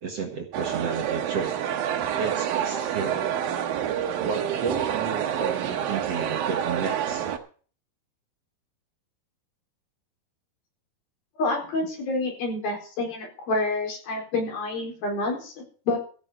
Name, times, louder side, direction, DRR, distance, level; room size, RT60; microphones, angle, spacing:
voice 1, 0.0-1.6 2.2-3.3 4.2-7.3, right 5 dB, 50° right, 3 dB, 2.2 m, -32 dB
sound 1, 0.5-7.4, right 9 dB, 70° right, 3.0 m, -28 dB
voice 2, 11.4-16.0, left 2 dB, 70° left, 1 dB, 6.3 m, -28 dB
15.5 x 6.7 x 8.1 m, 0.41 s
omnidirectional pair, 4.4 m